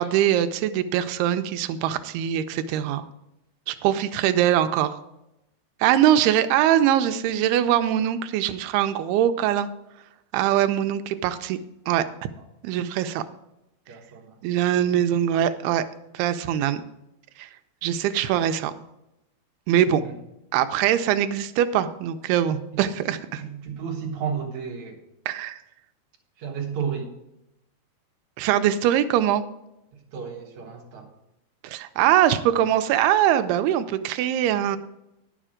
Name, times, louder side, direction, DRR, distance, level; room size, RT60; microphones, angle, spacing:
voice 1, 0.0-3.0 3.7-5.0 5.8-9.7 10.3-11.6 11.9-12.0 12.6-13.2 14.4-15.8 16.1-16.8 17.4-17.5 17.8-18.7 19.7-20.0 20.5-23.4 25.3-25.6 28.4-29.4 31.6-34.8, right 11 dB, 85° right, 10 dB, 2.6 m, -22 dB
voice 2, 13.9-14.4 19.9-20.2 22.7-22.9 23.3-25.0 26.4-27.1 30.1-31.1, right 6 dB, 60° right, 0 dB, 2.2 m, -33 dB
10.0 x 7.3 x 4.9 m, 0.88 s
omnidirectional pair, 4.6 m